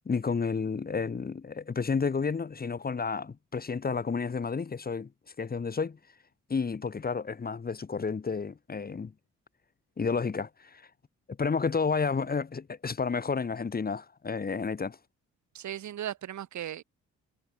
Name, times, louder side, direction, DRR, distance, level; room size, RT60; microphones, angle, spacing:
voice 1, 0.1-5.1 5.4-6.0 6.5-9.1 10.0-10.8 11.4-15.0, left 5 dB, 30° left, 1.8 m, -31 dB
voice 2, 15.5-16.8, right 11 dB, 70° right, 7.9 m, -37 dB
cardioid pair, 90°, 30 cm